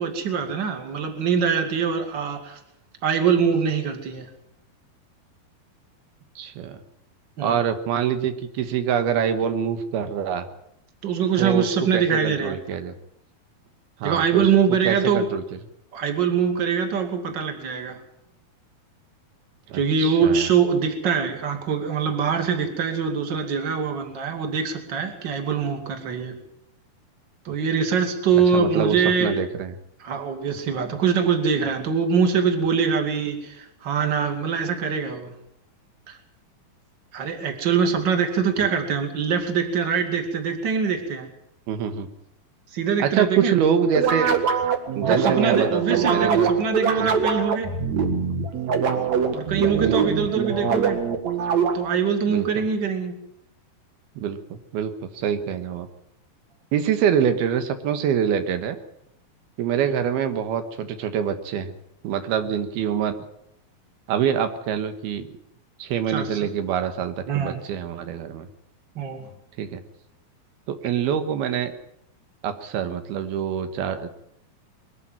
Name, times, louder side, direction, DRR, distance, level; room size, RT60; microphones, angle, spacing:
voice 1, 0.0-2.6 3.0-4.3 7.4-7.6 11.0-12.6 14.0-15.2 15.9-18.0 19.7-26.4 27.4-29.4 30.0-35.3 36.1-36.2 37.1-41.3 42.7-43.5 45.0-47.7 49.3-51.0 51.7-53.2 66.1-66.5 67.3-67.6 69.0-69.2, right 6 dB, 35° right, 5 dB, 2.6 m, -23 dB
voice 2, 6.4-6.8 7.4-10.5 11.4-12.9 14.0-14.5 14.8-15.4 19.7-20.5 28.5-29.8 41.7-42.1 43.0-44.4 45.0-46.5 47.0-47.2 49.8-50.1 52.3-52.6 54.2-55.9 56.7-58.8 59.6-61.7 62.0-63.2 64.1-65.3 65.8-68.5 69.6-69.8 70.7-71.7 72.4-74.1, right 8 dB, 80° right, 8 dB, 3.2 m, -25 dB
sound 1, 43.9-52.0, right 6 dB, 50° right, 2.8 m, -23 dB
22.5 x 13.5 x 9.2 m, 0.76 s
omnidirectional pair, 4.4 m